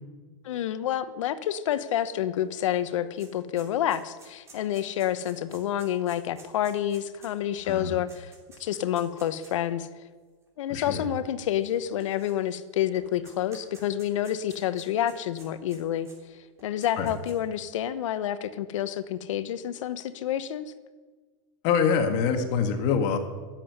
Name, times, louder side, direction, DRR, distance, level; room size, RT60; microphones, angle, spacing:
voice 1, 0.4-8.3 8.6-9.9 10.6-16.1 16.6-20.7, left 11 dB, 75° left, 13 dB, 1.0 m, -28 dB
sound 1, 2.4-2.5 2.7-9.6 10.4-10.5 11.6-12.6 12.9-16.2 16.6-17.5, right 3 dB, 15° right, 3.5 m, -53 dB
voice 2, 7.7-8.0 10.7-11.0 17.0-17.1 21.6-23.2, left 6 dB, 45° left, 6 dB, 1.8 m, -25 dB
13.0 x 7.8 x 9.5 m, 1.4 s
supercardioid pair, 150°, 16 cm